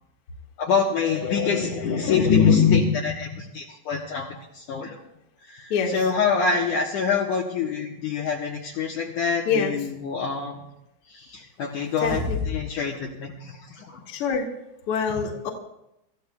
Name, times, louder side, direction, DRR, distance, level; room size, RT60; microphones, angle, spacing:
voice 1, 0.6-4.3 4.5-5.0 5.5-10.6 11.1-12.2 12.5-14.0, left 6 dB, 65° left, -2 dB, 2.4 m, -24 dB
voice 2, 5.7-6.1 9.5-9.7 12.0-12.4 14.1-14.5 14.9-15.5, left 5 dB, 45° left, 0 dB, 2.2 m, -25 dB
sound 1, 11.8-12.7 13.0-13.1, left 3 dB, 80° right, 8.6 m, -30 dB
27.0 x 14.0 x 2.3 m, 0.86 s
omnidirectional pair, 4.4 m